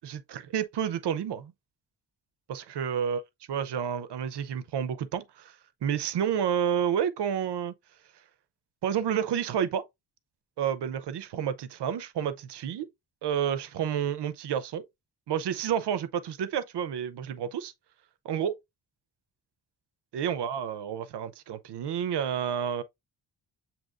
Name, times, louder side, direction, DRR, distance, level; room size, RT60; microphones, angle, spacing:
voice 1, 0.0-1.5 2.5-3.2 3.5-5.5 5.8-7.7 8.8-9.9 10.6-12.9 13.2-14.8 15.3-17.7 18.2-18.6 20.1-22.8, right 8 dB, 75° right, 0.6 m, -30 dB
7.4 x 2.9 x 2.4 m
wide cardioid pair, 140°, 41 cm